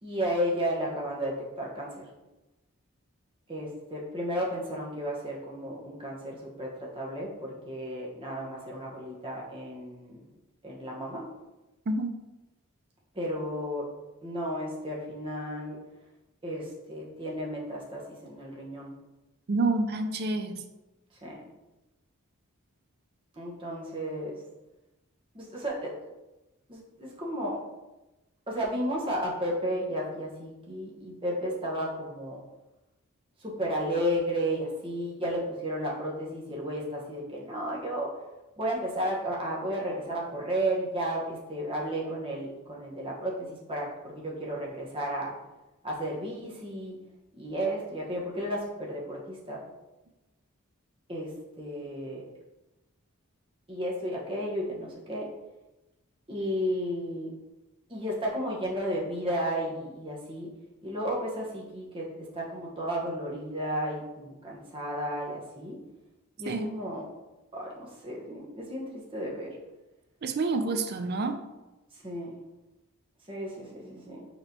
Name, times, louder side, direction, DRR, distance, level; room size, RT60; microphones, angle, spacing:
voice 1, 0.0-2.0 3.5-10.2 10.6-11.3 13.1-13.9 14.2-15.8 16.4-18.9 21.2-21.4 23.4-24.3 25.3-25.9 26.7-27.6 28.5-32.4 33.4-38.1 38.6-43.9 44.1-45.3 45.8-47.0 47.3-49.6 51.1-51.3 51.6-52.2 53.7-55.3 56.3-57.3 57.9-60.5 60.8-65.8 66.4-67.0 67.5-69.6 71.9-72.3 73.3-74.3, equal, 25° right, -3 dB, 0.9 m, -33 dB
voice 2, 19.5-20.6 66.5-66.7 70.2-71.4, right 3 dB, 45° right, 6 dB, 0.4 m, -28 dB
4.4 x 4.3 x 2.7 m, 1.0 s
head